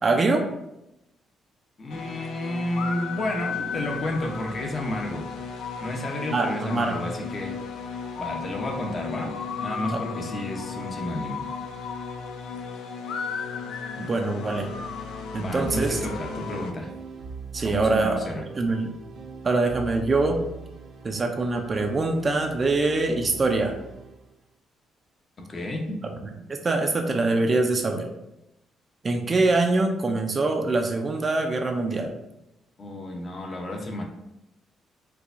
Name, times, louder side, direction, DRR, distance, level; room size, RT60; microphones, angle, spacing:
voice 1, 0.0-0.5 6.3-7.0 9.9-10.2 14.0-14.7 15.3-16.0 17.5-18.2 18.5-18.9 19.4-20.4 21.0-23.8 26.5-28.1 29.0-32.1, right 3 dB, 35° right, 4 dB, 0.4 m, -24 dB
voice 2, 1.8-5.2 5.8-7.5 8.1-11.4 15.4-16.9 17.6-18.4 25.5-26.1 32.8-34.0, left 1 dB, 40° left, 1 dB, 0.7 m, -31 dB
sound 1, 1.9-16.7, left 5 dB, 80° left, 0.4 m, -34 dB
sound 2, 15.6-24.3, right 6 dB, 70° right, 0.7 m, -40 dB
4.5 x 2.3 x 2.5 m, 0.88 s
cardioid pair, 90°, 0 cm